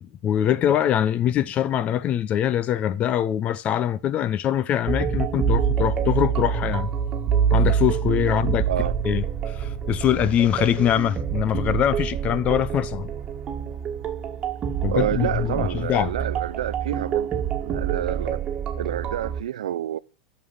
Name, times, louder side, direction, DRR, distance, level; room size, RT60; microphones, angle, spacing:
voice 1, 0.0-6.9 7.5-8.7 9.0-13.1 14.8-16.1, left 10 dB, 35° left, 0.7 m, -23 dB
sound 1, 4.9-19.4, right 7 dB, 30° right, 1.7 m, -26 dB
voice 2, 14.9-18.4 18.8-20.0, right 11 dB, 85° right, 0.4 m, -28 dB
11.0 x 6.8 x 7.1 m
hypercardioid pair, 110°, 4 cm